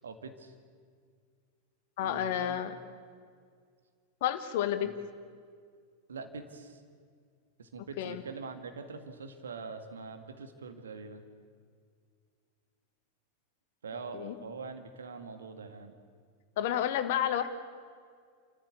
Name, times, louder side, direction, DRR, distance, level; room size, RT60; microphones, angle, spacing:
voice 1, 0.0-0.5 2.0-2.6 4.8-4.9 6.1-6.8 7.6-11.2 13.8-15.9, right 4 dB, 70° right, 7 dB, 1.9 m, -43 dB
voice 2, 2.0-2.7 4.2-4.9 8.0-8.2 14.1-14.4 16.6-17.5, left 10 dB, 50° left, 11 dB, 1.4 m, -30 dB
28.5 x 14.5 x 8.4 m, 2.1 s
figure-of-eight pair, 90°, 0 cm